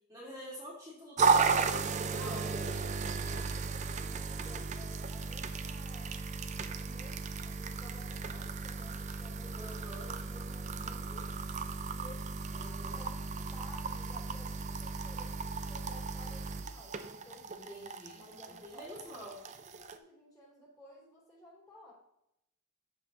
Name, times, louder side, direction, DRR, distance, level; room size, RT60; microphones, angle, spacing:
voice 1, 0.1-2.9 8.3-8.4 9.5-10.1 12.5-13.0 17.5-19.4, equal, 15° right, -6 dB, 2.0 m, -47 dB
sound 1, 1.2-20.0, right 5 dB, 35° right, 0.5 m, -35 dB
voice 2, 3.2-6.2 6.5-11.3 11.9-17.7 18.1-21.9, left 2 dB, 15° left, -5 dB, 3.1 m, -55 dB
13.5 x 5.5 x 2.9 m, 0.81 s
head